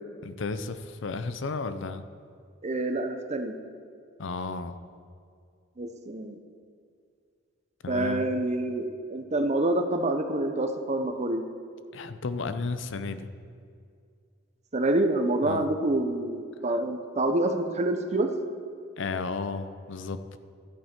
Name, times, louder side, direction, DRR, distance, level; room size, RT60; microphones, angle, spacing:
voice 1, 0.2-2.0 4.2-4.8 7.8-8.3 11.9-13.3 15.4-15.7 19.0-20.4, left 4 dB, 70° left, 11 dB, 0.6 m, -33 dB
voice 2, 2.6-3.5 5.8-6.4 7.9-11.4 14.7-18.3, right 2 dB, 35° right, 6 dB, 0.8 m, -27 dB
13.0 x 8.9 x 4.4 m, 2.3 s
head